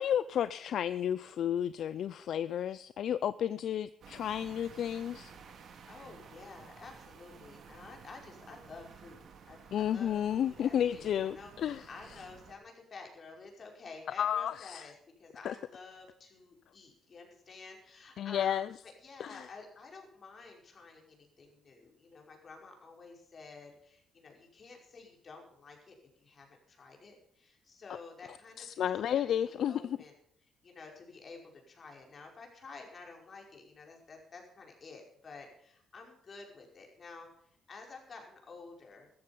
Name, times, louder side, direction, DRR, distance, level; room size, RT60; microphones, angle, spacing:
voice 1, 0.0-5.3 9.7-11.9 14.2-14.9 15.4-15.5 18.2-18.7 19.2-19.5 28.6-29.8, left 9 dB, 70° left, 0.5 m, -32 dB
sound 1, 4.0-12.5, right 6 dB, 65° right, 2.5 m, -54 dB
voice 2, 5.9-30.1 30.6-37.3 37.7-39.1, left 4 dB, 45° left, 5.2 m, -51 dB
14.5 x 13.5 x 5.5 m
cardioid pair, 90°, 0 cm